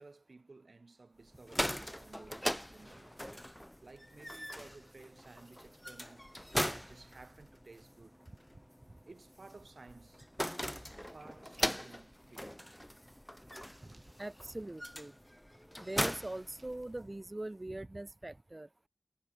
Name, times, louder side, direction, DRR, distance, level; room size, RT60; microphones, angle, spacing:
voice 1, 0.0-3.2 3.8-6.3 6.6-8.2 9.0-10.3 11.1-12.7 13.9-14.1, right 3 dB, 70° right, 2.2 m, -56 dB
sound 1, 1.3-17.2, equal, 5° left, 1.4 m, -40 dB
voice 2, 14.2-15.1 15.8-18.7, right 2 dB, 35° right, 0.9 m, -42 dB
wide cardioid pair, 50°, 0 cm